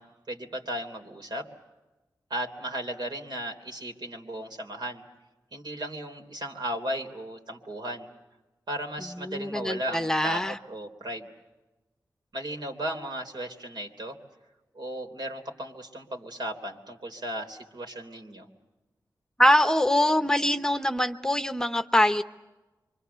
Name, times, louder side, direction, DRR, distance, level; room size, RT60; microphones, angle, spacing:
voice 1, 0.0-1.5 2.3-5.0 5.5-8.1 8.7-11.3 12.3-14.2 14.7-18.5, right 1 dB, 70° right, 3 dB, 3.3 m, -35 dB
voice 2, 9.1-10.6 19.4-22.2, left 1 dB, 10° left, 9 dB, 0.9 m, -23 dB
27.5 x 24.5 x 7.0 m, 1.1 s
wide cardioid pair, 85°, 8 cm